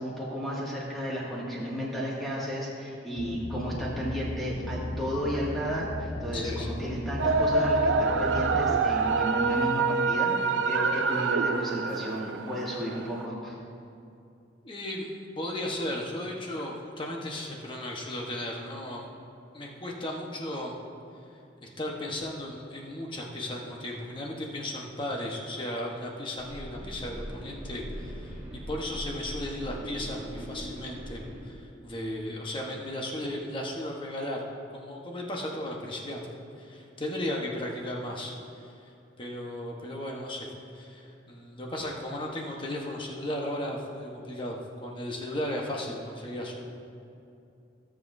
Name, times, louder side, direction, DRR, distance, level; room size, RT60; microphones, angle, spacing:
voice 1, 0.0-13.5, equal, ahead, -7 dB, 2.1 m, -33 dB
sound 1, 3.2-8.7, left 1 dB, 50° left, 0.7 m, -36 dB
voice 2, 6.3-6.7 14.6-19.0 19.5-20.8 21.6-34.4 34.7-38.9 39.2-40.5 40.7-46.7, left 1 dB, 25° left, -1 dB, 1.2 m, -35 dB
sound 2, 7.2-13.3, right 4 dB, 80° right, 0.4 m, -26 dB
sound 3, 26.4-31.4, equal, 20° right, 1.9 m, -40 dB
16.5 x 7.5 x 2.7 m, 2.6 s
head